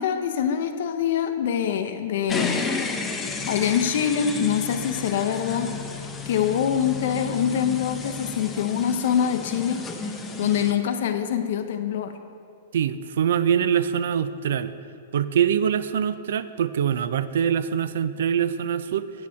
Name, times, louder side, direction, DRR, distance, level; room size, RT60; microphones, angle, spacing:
voice 1, 0.0-2.8 3.5-5.7 6.0-9.8 10.4-12.2, left 8 dB, 60° left, 6 dB, 0.6 m, -25 dB
sound 1, 2.3-10.7, left 4 dB, 15° left, 0.8 m, -32 dB
voice 2, 12.7-14.7 15.1-19.1, right 8 dB, 70° right, 14 dB, 0.4 m, -24 dB
8.5 x 8.4 x 4.3 m, 2.4 s
hypercardioid pair, 120°, 0 cm